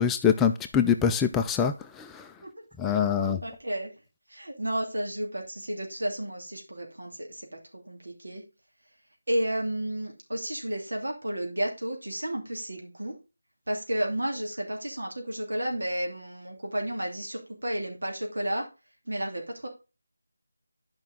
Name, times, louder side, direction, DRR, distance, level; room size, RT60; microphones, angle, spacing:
voice 1, 0.0-1.7 2.8-3.4, left 7 dB, 5° left, 0.3 m, -23 dB
voice 2, 2.9-3.9 4.3-8.4 9.3-13.2 13.7-18.7 19.1-19.7, right 1 dB, 90° right, 2.6 m, -32 dB
9.3 x 5.3 x 3.8 m
figure-of-eight pair, 175°, 0 cm